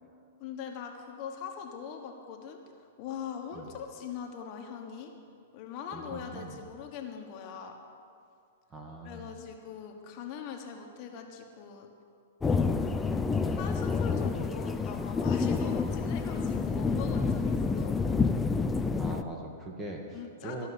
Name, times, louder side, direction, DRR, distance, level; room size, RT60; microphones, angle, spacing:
voice 1, 0.4-2.6 3.0-5.1 5.5-7.8 9.0-11.9 13.4-18.0 20.1-20.7, left 7 dB, 40° left, 3 dB, 1.2 m, -41 dB
voice 2, 5.9-6.7 8.7-9.3 12.6-12.9 19.0-20.7, right 1 dB, 20° right, 1 dB, 1.5 m, -41 dB
sound 1, 12.4-19.2, left 4 dB, 10° left, 0.4 m, -28 dB
13.5 x 5.5 x 8.2 m, 2.4 s
hypercardioid pair, 135°, 0 cm